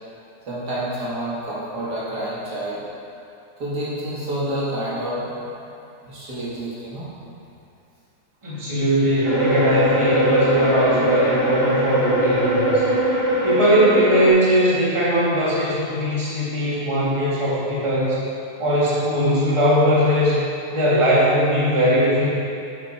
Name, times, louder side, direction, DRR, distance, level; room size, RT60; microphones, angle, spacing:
voice 1, 0.5-2.8 3.6-5.6 6.0-7.1, right 1 dB, 80° right, -8 dB, 2.7 m, -28 dB
voice 2, 8.4-12.8 13.4-18.2 18.6-20.4 20.7-22.3, equal, 20° right, -9 dB, 2.1 m, -19 dB
sound 1, 9.2-14.3, right 1 dB, 85° left, 2.5 m, -21 dB
8.9 x 7.5 x 4.5 m, 2.6 s
omnidirectional pair, 1.7 m